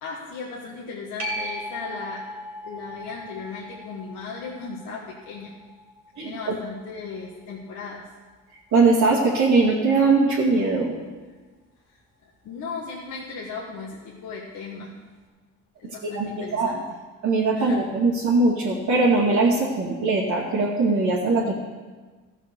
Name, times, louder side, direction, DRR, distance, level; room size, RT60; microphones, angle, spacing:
voice 1, 0.0-2.2 2.6-5.5 6.2-8.0 12.4-14.9 15.8-16.8 17.5-17.8, left 4 dB, 85° left, -4 dB, 1.5 m, -36 dB
sound 1, 1.2-8.4 13.9-14.0, equal, 55° right, 2.2 m, -39 dB
voice 2, 6.2-6.6 8.7-10.9 16.1-16.8 17.2-21.5, right 3 dB, 70° right, -7 dB, 2.2 m, -21 dB
14.0 x 5.7 x 6.9 m, 1.4 s
cardioid pair, 90°, 30 cm